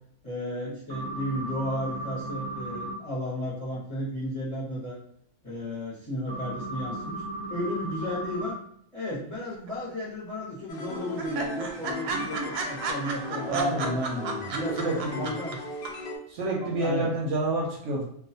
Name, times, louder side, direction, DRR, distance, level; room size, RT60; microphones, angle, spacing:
voice 1, 0.2-5.0 5.4-7.2 7.5-8.6 8.9-14.0 14.5-15.6 16.6-17.1, equal, 35° left, -7 dB, 0.7 m, -33 dB
sound 1, 0.9-2.9 6.3-8.5 12.1-12.3, right 2 dB, 45° right, 0.4 m, -36 dB
sound 2, 9.5-10.1 10.4-10.5 10.8-10.9 11.2-15.5 15.8-15.9, right 5 dB, 90° right, 1.1 m, -33 dB
sound 3, 10.7-16.2, left 3 dB, 85° left, 0.4 m, -38 dB
voice 2, 13.5-15.3 16.3-18.0, right 2 dB, 65° right, -3 dB, 0.8 m, -29 dB
2.4 x 2.3 x 2.6 m, 0.68 s
omnidirectional pair, 1.6 m